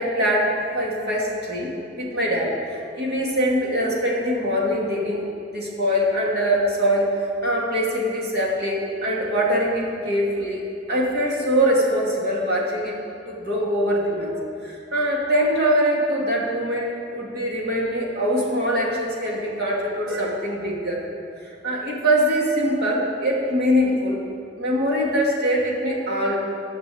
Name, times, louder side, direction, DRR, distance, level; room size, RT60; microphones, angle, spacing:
voice 1, 0.0-5.2 5.5-10.6 10.9-13.0 13.3-14.3 14.6-21.0 21.4-24.2 24.6-26.4, equal, 60° right, -3 dB, 2.6 m, -23 dB
14.0 x 6.0 x 8.6 m, 2.5 s
head